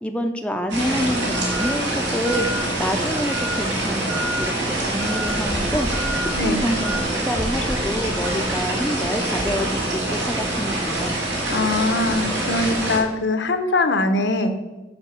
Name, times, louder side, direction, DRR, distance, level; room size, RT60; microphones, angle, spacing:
voice 1, 0.0-2.5 2.8-5.9 6.2-11.1, equal, 5° left, 4 dB, 0.5 m, -27 dB
sound 1, 0.7-13.0, right 1 dB, 90° right, 2.4 m, -25 dB
sound 2, 1.0-7.0, right 1 dB, 65° right, 1.3 m, -33 dB
voice 2, 11.5-14.5, left 2 dB, 80° left, 8 dB, 0.9 m, -22 dB
7.1 x 5.2 x 6.9 m, 1.1 s
head